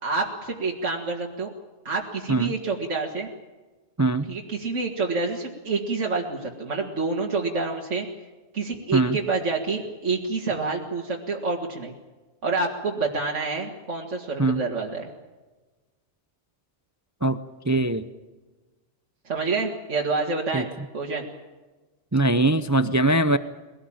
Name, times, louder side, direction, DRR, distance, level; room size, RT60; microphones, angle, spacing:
voice 1, 0.0-1.5 1.9-3.3 4.3-8.1 8.5-11.9 12.4-15.1 19.3-20.7 20.9-21.2, right 3 dB, 70° right, -1 dB, 2.3 m, -27 dB
voice 2, 17.7-18.1 20.5-20.6 22.1-23.4, right 2 dB, 20° right, 12 dB, 0.5 m, -21 dB
22.0 x 18.0 x 8.8 m, 1.2 s
omnidirectional pair, 1.3 m